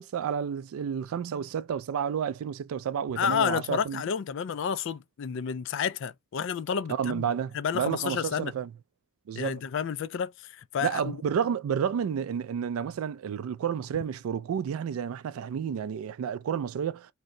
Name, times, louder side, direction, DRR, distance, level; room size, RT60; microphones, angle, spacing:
voice 1, 0.0-4.0 7.0-8.7 9.3-9.6 10.8-17.1, right 7 dB, 85° right, 0.3 m, -31 dB
voice 2, 3.2-7.3 7.5-8.5 9.3-11.2, left 7 dB, 60° left, 0.3 m, -30 dB
2.6 x 2.1 x 3.7 m
head